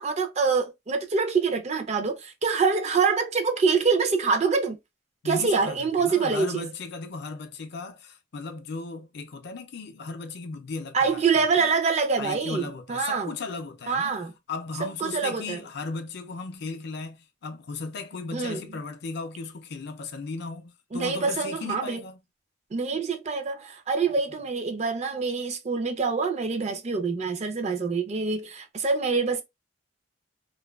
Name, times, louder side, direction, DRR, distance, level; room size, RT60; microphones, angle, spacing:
voice 1, 0.0-4.8 5.2-6.6 10.9-13.3 13.9-14.3 14.8-15.6 18.3-18.7 20.9-22.0 22.7-29.4, right 5 dB, 35° right, 0.4 m, -25 dB
voice 2, 5.2-11.7 12.2-14.2 14.5-22.2, left 4 dB, 55° left, 0.4 m, -36 dB
2.5 x 2.2 x 2.2 m
head